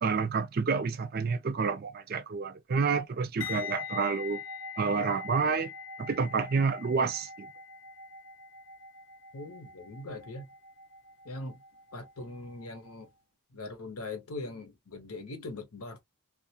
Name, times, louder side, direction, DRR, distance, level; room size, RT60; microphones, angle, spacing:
voice 1, 0.0-4.4 4.8-5.7 6.0-7.5, right 5 dB, 45° right, 0.4 m, -29 dB
sound 1, 3.4-12.4 12.6-12.9, left 6 dB, 55° left, 0.5 m, -43 dB
voice 2, 9.3-10.5 11.2-11.6 11.9-13.1 13.5-16.0, left 2 dB, 85° left, 0.8 m, -41 dB
2.4 x 2.1 x 2.7 m
head